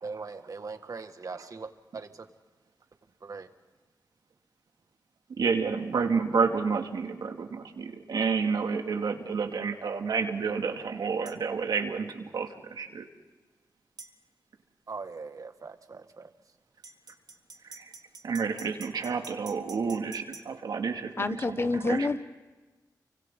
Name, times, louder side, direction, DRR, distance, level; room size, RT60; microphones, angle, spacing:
voice 1, 0.0-2.3 3.2-3.5 14.9-16.3, right 4 dB, 55° right, 7 dB, 1.8 m, -40 dB
voice 2, 5.3-13.0 17.6-17.9 18.2-22.1, right 5 dB, 90° right, 4 dB, 2.2 m, -30 dB
sound 1, 11.3-11.4 14.0-14.1 16.8-20.5, right 4 dB, 75° right, 2.1 m, -47 dB
voice 3, 21.2-22.2, left 3 dB, 35° left, 11 dB, 1.2 m, -28 dB
29.5 x 25.0 x 3.8 m, 1.2 s
wide cardioid pair, 80°, 7 cm